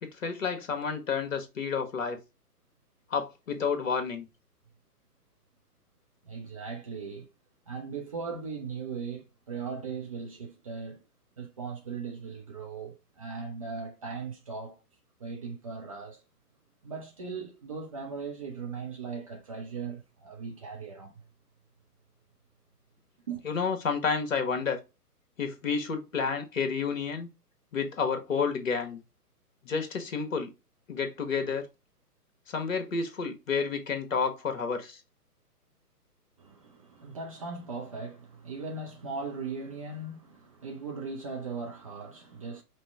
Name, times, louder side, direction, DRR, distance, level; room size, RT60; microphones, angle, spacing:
voice 1, 0.0-2.2 3.1-4.3 23.4-24.8 25.4-27.3 27.7-29.0 29.6-30.5 30.9-31.7 32.5-35.0, left 5 dB, 55° left, 1.4 m, -30 dB
voice 2, 6.2-7.3 7.7-11.0 11.4-14.8 15.2-16.2 16.8-21.1 23.3-23.4 36.4-42.6, right 4 dB, 25° right, 0.6 m, -38 dB
5.2 x 2.8 x 3.4 m
figure-of-eight pair, 130°, 47 cm